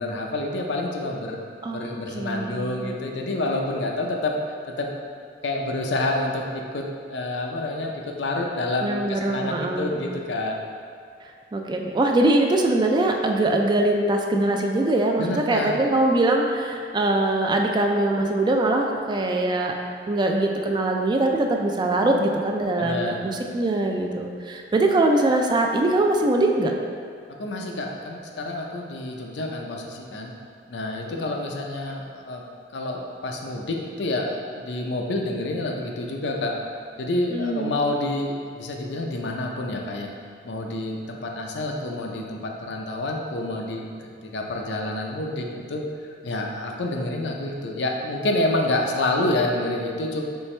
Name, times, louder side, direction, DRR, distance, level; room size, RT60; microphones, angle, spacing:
voice 1, 0.0-1.4 1.7-4.3 4.7-4.9 5.4-6.8 7.1-10.6 15.2-15.8 22.8-23.2 27.4-30.3 30.7-32.4 32.7-36.5 37.0-40.1 40.4-45.8 46.2-50.2, left 2 dB, 80° left, 1 dB, 0.5 m, -28 dB
voice 2, 1.6-2.9 8.8-10.1 11.5-19.7 20.1-26.7 31.2-31.3 37.3-37.7, right 2 dB, 25° right, 2 dB, 0.3 m, -22 dB
4.4 x 3.3 x 3.2 m, 2.2 s
head